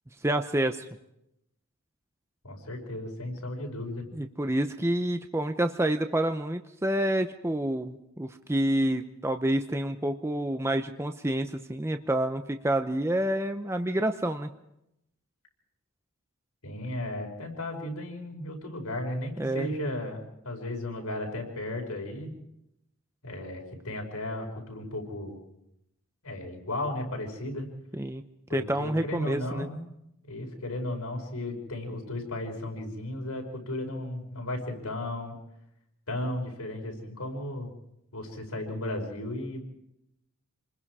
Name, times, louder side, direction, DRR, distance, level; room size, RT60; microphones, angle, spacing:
voice 1, 0.2-0.9 4.1-14.5 19.4-19.7 27.9-28.2 28.5-29.7, right 1 dB, 10° right, 7 dB, 0.7 m, -28 dB
voice 2, 2.4-4.0 16.6-22.3 23.2-25.4 26.2-27.7 28.5-29.8 30.2-35.4 36.1-37.7 38.1-39.6, left 1 dB, 90° left, 1 dB, 5.5 m, -35 dB
28.0 x 21.0 x 4.9 m, 0.82 s
head